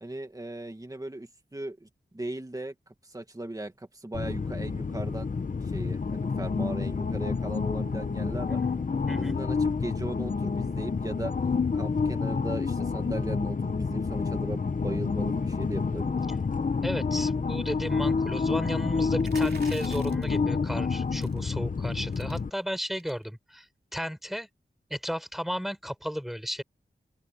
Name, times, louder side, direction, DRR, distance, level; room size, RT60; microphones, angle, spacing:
voice 1, 0.0-1.9 2.1-5.3 5.6-8.6 9.1-11.3 11.7-16.3, right 1 dB, 20° right, 2.1 m, -38 dB
sound 1, 4.1-22.5, left 4 dB, 50° left, 1.0 m, -28 dB
voice 2, 16.8-23.7 23.9-24.5 24.9-26.6, equal, ahead, 7.0 m, -34 dB
sound 2, 19.2-20.4 21.2-21.4 21.8-21.9 22.1-22.4 22.9-23.2, right 4 dB, 65° right, 3.0 m, -46 dB
open air
wide cardioid pair, 60°, 18 cm